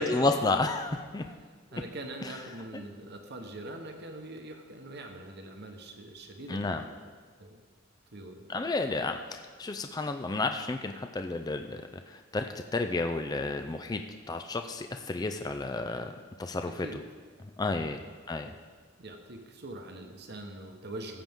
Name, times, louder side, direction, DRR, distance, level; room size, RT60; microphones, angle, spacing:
voice 1, 0.0-1.3 2.7-2.8 6.5-6.8 8.5-11.8 12.1-14.0 14.3-16.9 17.6-18.0 18.3-18.5, left 3 dB, 20° left, 6 dB, 0.4 m, -31 dB
voice 2, 1.7-7.1 7.4-7.6 8.1-8.6 16.6-17.0 18.0-18.1 18.4-18.6 19.0-21.2, right 1 dB, 55° right, 4 dB, 1.1 m, -43 dB
15.0 x 7.5 x 3.6 m, 1.5 s
head